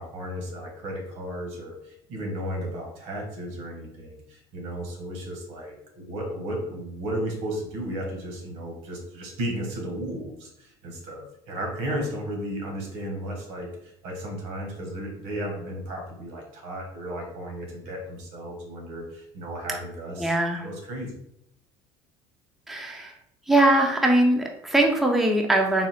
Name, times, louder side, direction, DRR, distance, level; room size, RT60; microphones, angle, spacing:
voice 1, 0.0-20.3 20.6-21.2, equal, 75° right, 2 dB, 1.4 m, -34 dB
voice 2, 20.2-20.7 22.7-23.1 23.5-25.9, right 1 dB, ahead, 1 dB, 0.5 m, -21 dB
4.0 x 2.3 x 4.2 m, 0.75 s
cardioid pair, 135°, 11 cm